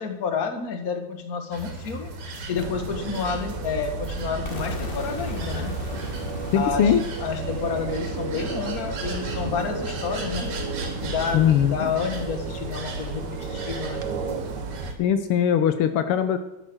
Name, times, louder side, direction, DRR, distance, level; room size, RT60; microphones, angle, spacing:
voice 1, 0.0-5.7 6.5-10.5 11.0-14.0, left 5 dB, 40° left, 6 dB, 1.4 m, -30 dB
sound 1, 1.5-15.0, right 2 dB, 85° right, 3.8 m, -37 dB
sound 2, 2.6-14.9, right 3 dB, 55° right, 1.3 m, -33 dB
sound 3, 4.4-10.3, left 3 dB, 60° left, 0.5 m, -40 dB
voice 2, 6.5-7.0 11.3-11.8 15.0-16.4, left 9 dB, 90° left, 10 dB, 1.2 m, -20 dB
13.0 x 10.5 x 6.2 m, 0.92 s
omnidirectional pair, 3.6 m